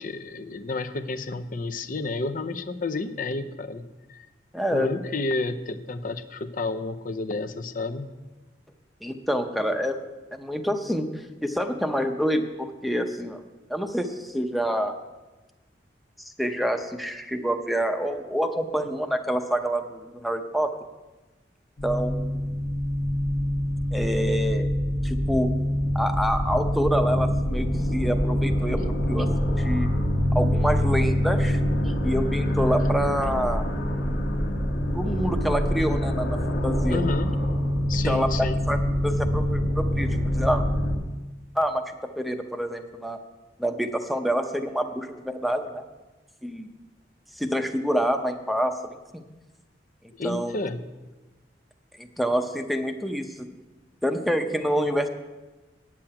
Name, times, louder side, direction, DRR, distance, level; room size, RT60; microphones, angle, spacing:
voice 1, 0.0-4.3 4.7-8.1 36.9-37.3 37.9-38.6 50.1-50.9, left 3 dB, 50° left, 8 dB, 0.7 m, -31 dB
voice 2, 4.5-4.9 9.0-10.0 10.3-11.1 11.4-13.4 13.7-14.9 16.2-20.7 21.8-22.6 23.9-24.7 25.0-25.5 25.9-29.9 30.3-31.6 31.8-33.6 34.9-37.0 38.0-38.8 39.0-40.6 41.5-41.8 42.2-43.2 43.6-45.8 46.4-46.7 47.4-48.8 49.1-49.2 50.2-50.7 52.0-53.5 54.0-55.1, equal, ahead, 5 dB, 0.7 m, -27 dB
sound 1, 21.8-41.0, equal, 80° left, 1.3 m, -25 dB
9.0 x 7.5 x 8.8 m, 1.2 s
head